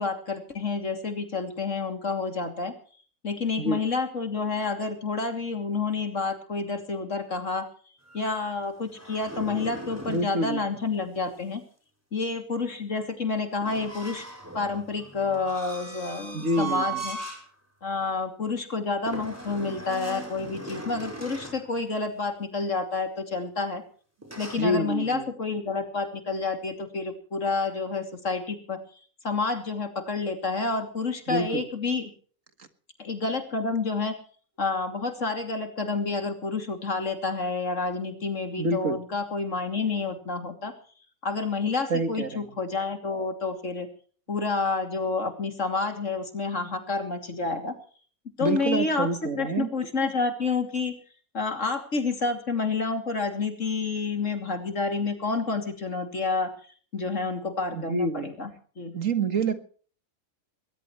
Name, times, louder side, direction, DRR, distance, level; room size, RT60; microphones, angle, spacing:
voice 1, 0.0-2.8 3.2-7.7 8.1-11.6 12.1-14.2 14.5-17.2 17.8-23.8 24.4-28.8 29.2-32.1 33.0-34.2 34.6-40.7 41.2-43.9 44.3-47.8 48.4-50.9 51.3-56.5 56.9-58.5 58.8-59.0, left 4 dB, 60° left, 6 dB, 3.1 m, -29 dB
sound 1, 8.0-10.3 13.6-17.4 17.9-18.1 19.1-21.6 24.2-24.6, right 3 dB, 10° right, 6.0 m, -38 dB
voice 2, 10.1-10.6 16.3-17.0 24.6-25.3 31.3-31.6 38.6-39.0 41.9-42.4 48.4-49.7 57.7-58.3 58.9-59.6, right 2 dB, 65° right, 9 dB, 2.0 m, -27 dB
21.0 x 19.5 x 3.2 m, 0.43 s
omnidirectional pair, 1.5 m